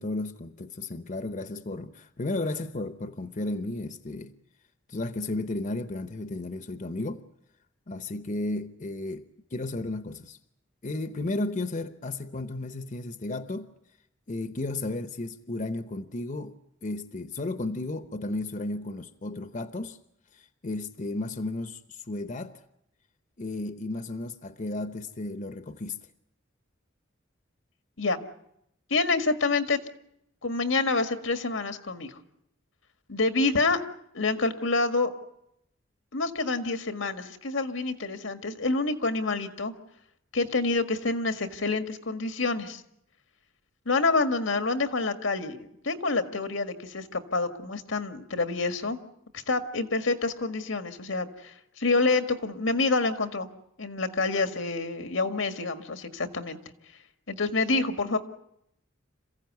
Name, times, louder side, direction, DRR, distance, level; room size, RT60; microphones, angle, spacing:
voice 1, 0.0-4.4 4.9-7.2 7.9-10.4 10.8-13.7 14.3-20.0 20.3-22.6 23.4-26.0, left 2 dB, 40° left, 0.9 m, -34 dB
voice 2, 28.9-29.8 30.4-32.2 33.1-33.8 34.1-35.1 36.1-39.7 40.3-42.8 43.9-49.0 49.3-53.5 53.8-56.6 57.3-58.2, left 3 dB, 90° left, 1.8 m, -27 dB
27.0 x 15.5 x 9.5 m
head